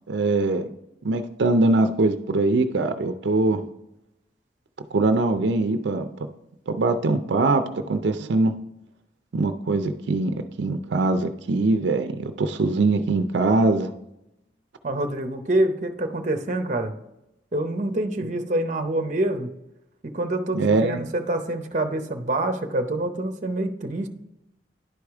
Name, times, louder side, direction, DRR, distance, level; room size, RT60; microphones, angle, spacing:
voice 1, 0.1-0.7 1.0-3.6 4.9-6.0 6.7-8.5 9.3-13.9 18.2-18.3 20.5-21.0, right 2 dB, 85° right, 8 dB, 0.5 m, -22 dB
voice 2, 14.8-16.9 17.5-19.5 20.0-24.1, right 1 dB, 40° right, 6 dB, 0.6 m, -26 dB
11.0 x 4.8 x 3.5 m, 0.90 s
head